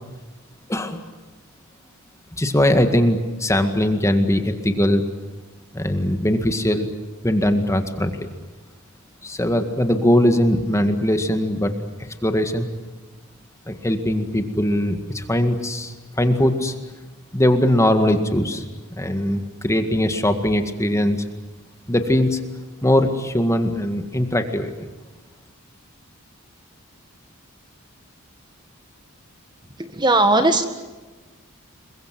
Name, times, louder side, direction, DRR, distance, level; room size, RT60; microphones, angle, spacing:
voice 1, 2.4-5.0 5.7-6.9 7.2-8.3 9.2-11.7 12.2-12.7 13.7-16.7 17.3-18.6 19.0-21.2 21.9-22.4 22.8-24.7, left 1 dB, 15° left, 7 dB, 2.0 m, -20 dB
voice 2, 29.8-30.6, right 2 dB, 20° right, 7 dB, 1.7 m, -18 dB
28.0 x 23.0 x 7.7 m, 1.2 s
head